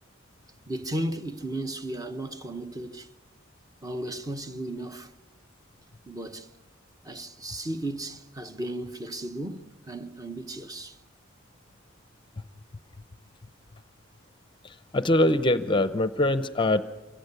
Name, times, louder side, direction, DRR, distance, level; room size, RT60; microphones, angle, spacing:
voice 1, 0.7-3.1 3.8-5.1 6.1-6.5 7.0-11.0, right 1 dB, 20° right, 1.0 m, -35 dB
voice 2, 14.6-16.8, left 1 dB, 25° left, 0.7 m, -23 dB
26.5 x 15.5 x 9.7 m
head